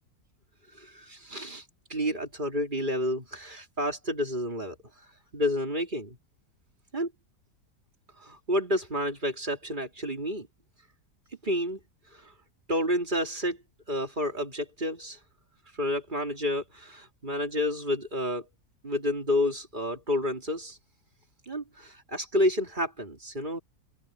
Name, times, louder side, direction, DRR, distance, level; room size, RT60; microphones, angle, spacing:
voice 1, 0.8-1.6 1.9-4.7 5.3-6.2 6.9-7.1 8.2-10.5 11.4-11.8 12.7-13.6 13.9-15.2 15.8-18.4 18.8-20.8 21.5-23.6, left 1 dB, 30° right, 2.8 m, -30 dB
omnidirectional pair, 1.6 m